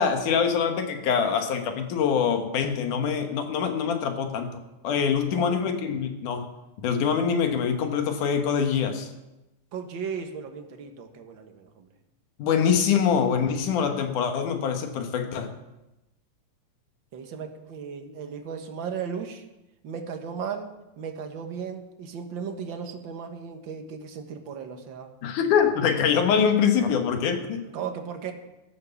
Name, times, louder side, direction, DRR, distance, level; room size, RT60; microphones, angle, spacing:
voice 1, 0.0-4.5 4.8-6.5 6.8-9.1 12.4-15.5 25.2-27.7, left 7 dB, 75° left, 6 dB, 2.8 m, -24 dB
voice 2, 5.3-5.6 9.7-11.9 17.1-19.4 19.8-25.1 27.7-28.3, right 6 dB, 50° right, 5 dB, 1.6 m, -36 dB
12.5 x 11.0 x 7.0 m, 0.97 s
omnidirectional pair, 3.7 m